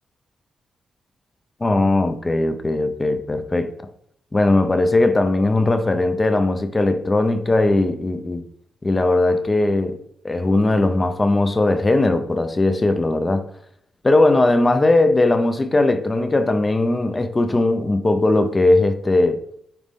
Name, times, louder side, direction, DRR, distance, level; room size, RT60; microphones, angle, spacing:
voice 1, 1.6-3.7 4.3-8.4 8.8-10.0 10.2-13.4 14.0-19.4, left 2 dB, 20° left, 0.5 m, -19 dB
9.2 x 3.1 x 3.6 m
wide cardioid pair, 155°, 0 cm